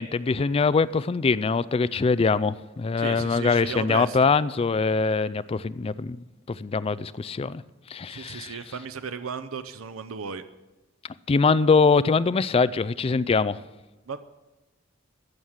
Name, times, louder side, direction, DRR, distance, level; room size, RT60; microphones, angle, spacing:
voice 1, 0.0-6.2 6.5-7.6 7.9-8.5 11.3-13.6, left 4 dB, 30° left, 16 dB, 0.3 m, -23 dB
voice 2, 3.0-4.3 8.1-10.4 14.1-14.2, right 6 dB, 85° right, 11 dB, 0.6 m, -35 dB
15.0 x 6.4 x 7.3 m, 1.1 s
head